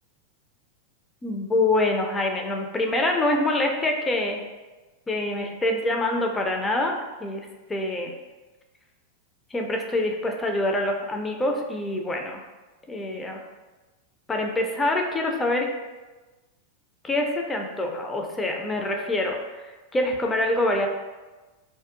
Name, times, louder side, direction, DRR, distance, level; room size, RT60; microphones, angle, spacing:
voice 1, 1.2-4.4 5.1-6.9 7.2-8.1 9.5-12.4 12.9-13.4 14.3-15.7 17.0-20.9, left 2 dB, 15° left, 2 dB, 0.3 m, -25 dB
2.5 x 2.2 x 2.5 m, 1.2 s
figure-of-eight pair, 90°, 0 cm